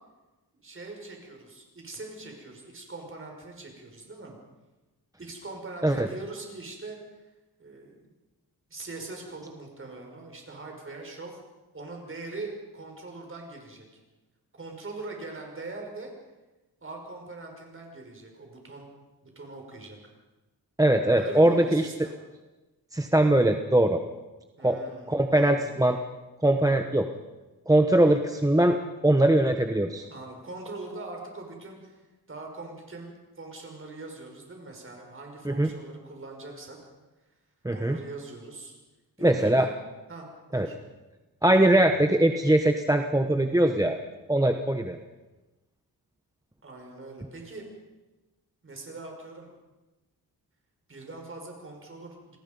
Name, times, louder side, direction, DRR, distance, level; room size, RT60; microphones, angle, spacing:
voice 1, 0.6-4.4 5.2-7.3 7.6-8.1 8.7-11.4 11.7-13.9 14.6-16.1 16.8-18.9 19.2-20.0 21.2-22.1 24.6-25.6 30.1-32.0 32.3-36.8 37.7-38.8 39.2-39.7 40.1-40.3 40.5-40.8 46.6-47.6 48.6-49.5 50.9-52.4, right 2 dB, 30° right, 1 dB, 5.7 m, -42 dB
voice 2, 20.8-21.8 22.9-24.0 24.6-24.8 25.1-26.0 26.4-27.1 27.7-28.8 29.0-30.1 35.4-35.7 37.6-38.0 39.2-39.7 40.5-40.7 41.4-44.0 44.3-45.0, right 1 dB, 10° right, 5 dB, 1.0 m, -21 dB
28.5 x 19.5 x 5.4 m, 1.1 s
wide cardioid pair, 135°, 39 cm